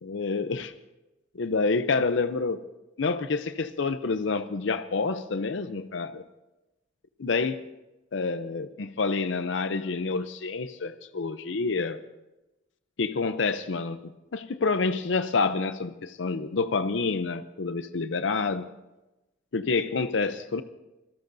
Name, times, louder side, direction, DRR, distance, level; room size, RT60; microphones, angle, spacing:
voice 1, 0.0-0.7 1.3-2.6 3.0-6.2 7.2-7.6 8.1-12.0 13.0-18.7 19.5-20.6, left 4 dB, 70° left, 11 dB, 0.6 m, -28 dB
26.5 x 17.0 x 2.7 m, 1.0 s
head